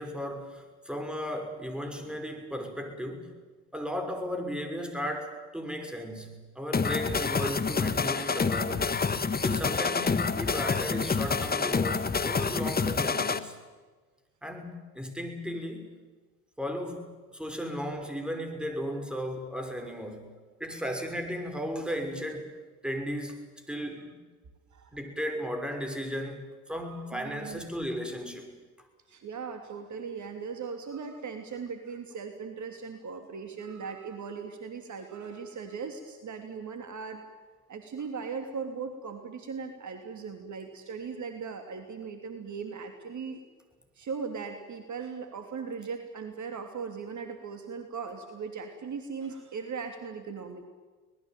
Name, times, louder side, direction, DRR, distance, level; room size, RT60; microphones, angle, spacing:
voice 1, 0.0-3.3 3.7-9.0 9.4-13.6 14.4-15.9 16.6-20.3 20.6-24.2 24.9-28.5, equal, ahead, 5 dB, 5.7 m, -35 dB
sound 1, 6.7-13.4, left 5 dB, 20° left, 1.5 m, -28 dB
voice 2, 26.8-27.7 29.1-37.2 37.7-43.4 43.9-50.6, right 5 dB, 40° right, 6 dB, 3.0 m, -38 dB
25.0 x 19.5 x 9.2 m, 1.4 s
hypercardioid pair, 65°, 45 cm